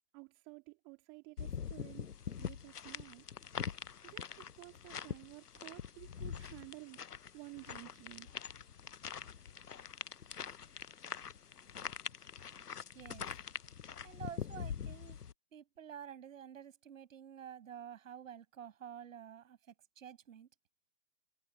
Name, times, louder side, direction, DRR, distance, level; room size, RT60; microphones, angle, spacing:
voice 1, 0.1-2.1 2.4-7.0 7.3-8.3, right 31 dB, 25° right, 2.2 m, -53 dB
sound 1, 1.4-15.3, left 7 dB, 85° left, 0.8 m, -44 dB
voice 2, 12.9-13.3 14.0-15.2 15.5-20.5, right 9 dB, 55° right, 6.7 m, -50 dB
figure-of-eight pair, 130°, 46 cm